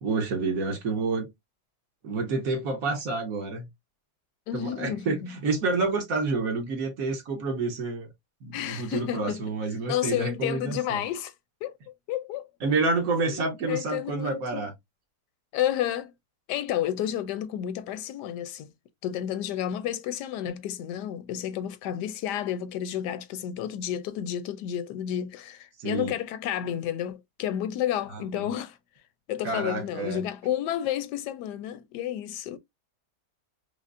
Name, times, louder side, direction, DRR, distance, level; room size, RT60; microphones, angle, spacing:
voice 1, 0.0-1.3 2.0-3.7 4.5-8.1 8.4-11.0 12.6-14.7 25.8-26.1 28.3-28.4 29.4-30.2, right 3 dB, 60° right, 1.4 m, -28 dB
voice 2, 4.5-5.4 8.5-9.4 9.9-11.3 11.6-12.5 13.2-13.4 13.7-14.7 15.5-16.1 16.5-18.7 19.0-28.8 29.3-32.6, left 11 dB, 85° left, 1.2 m, -31 dB
4.9 x 2.0 x 2.4 m
omnidirectional pair, 1.8 m